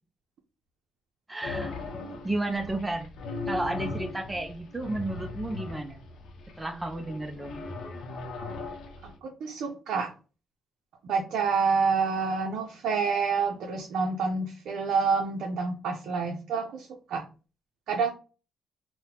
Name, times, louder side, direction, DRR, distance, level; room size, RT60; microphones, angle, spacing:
voice 1, 1.3-3.1 3.5-6.0 6.6-7.9, right 2 dB, 15° right, 0.4 m, -33 dB
sound 1, 1.4-9.2, left 3 dB, 75° left, 0.6 m, -38 dB
voice 2, 9.0-10.1 11.1-17.2 17.9-18.1, right 5 dB, 75° right, 0.5 m, -28 dB
3.9 x 2.1 x 2.8 m
cardioid pair, 90°, 0 cm